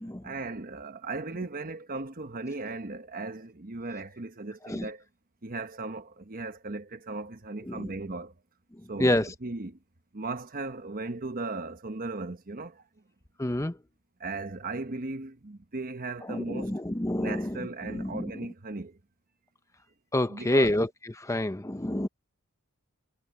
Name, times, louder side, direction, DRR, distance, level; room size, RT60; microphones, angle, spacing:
voice 1, 0.2-5.1 5.4-8.3 8.9-9.8 10.1-12.9 14.2-16.8 17.1-19.0 20.3-20.8, right 3 dB, 40° right, 1.2 m, -37 dB
voice 2, 13.4-13.7 16.3-17.6 17.9-18.2 20.1-20.9 21.2-22.1, left 1 dB, 15° left, 0.8 m, -27 dB
head